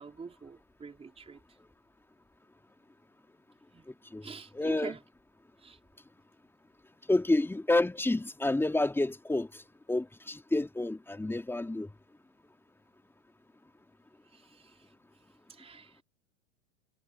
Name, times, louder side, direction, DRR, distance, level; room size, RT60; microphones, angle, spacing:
voice 1, 0.0-1.4 3.7-3.8 4.2-5.0 5.6-5.8 14.3-14.9 15.5-16.0, right 5 dB, 15° right, 5.0 m, -46 dB
voice 2, 3.9-4.3 4.5-4.9 7.1-9.6 9.9-11.9, left 2 dB, 5° left, 3.5 m, -29 dB
hypercardioid pair, 100°, 37 cm